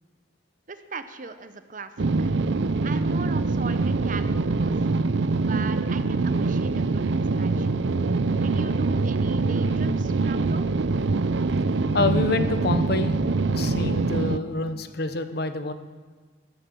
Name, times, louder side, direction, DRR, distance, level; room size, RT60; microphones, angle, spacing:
voice 1, 0.7-2.3 2.8-5.1 5.3-7.1 7.4-7.7 8.4-10.7, right 4 dB, 45° right, 10 dB, 0.9 m, -38 dB
sound 1, 2.0-14.4, right 3 dB, 80° right, 0.6 m, -24 dB
voice 2, 11.9-15.7, left 3 dB, 60° left, 10 dB, 0.9 m, -27 dB
14.0 x 12.5 x 7.0 m, 1.5 s
head